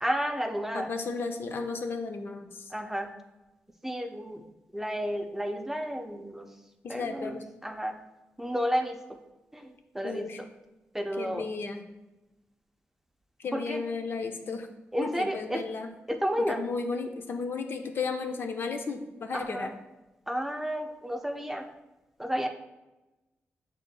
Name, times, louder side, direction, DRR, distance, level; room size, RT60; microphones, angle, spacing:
voice 1, 0.0-0.9 2.7-3.1 3.8-4.5 4.7-6.6 6.9-8.0 8.4-9.2 9.5-10.5 10.9-11.5 13.5-13.8 14.9-15.6 16.1-16.6 19.3-19.7 20.3-21.7 22.2-22.5, equal, 10° right, 4 dB, 0.4 m, -32 dB
voice 2, 0.7-2.7 6.8-7.4 10.0-10.4 11.2-11.8 13.4-14.7 15.0-15.9 16.5-19.7, left 4 dB, 60° left, 5 dB, 0.5 m, -34 dB
6.3 x 3.6 x 2.2 m, 1.0 s
cardioid pair, 95°, 4 cm